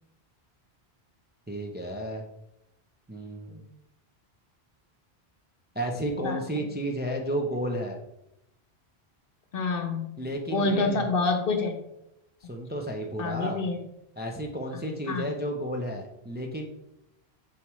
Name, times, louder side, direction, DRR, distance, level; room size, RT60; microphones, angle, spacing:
voice 1, 1.5-2.3 3.1-3.5 5.7-8.0 10.2-11.1 12.4-13.6 14.2-16.7, right 1 dB, 10° right, 1 dB, 0.5 m, -32 dB
voice 2, 9.5-10.1 10.5-11.8 13.2-13.8 14.8-15.3, left 3 dB, 60° left, 6 dB, 1.0 m, -27 dB
7.1 x 4.6 x 3.1 m, 0.84 s
omnidirectional pair, 1.1 m